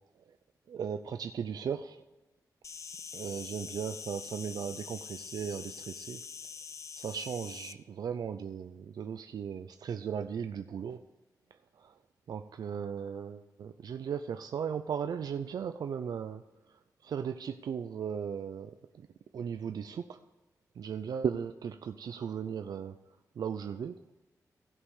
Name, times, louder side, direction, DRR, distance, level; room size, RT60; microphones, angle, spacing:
voice 1, 0.7-2.0 3.1-6.2 7.0-11.0 11.8-12.0 12.3-16.4 16.7-19.1 19.3-20.2 20.8-22.9 23.4-24.0, right 7 dB, 80° right, 8 dB, 0.5 m, -37 dB
Insect, 2.6-7.7, left 6 dB, 50° left, 0.5 m, -44 dB
16.0 x 5.4 x 4.9 m, 1.1 s
wide cardioid pair, 145°, 7 cm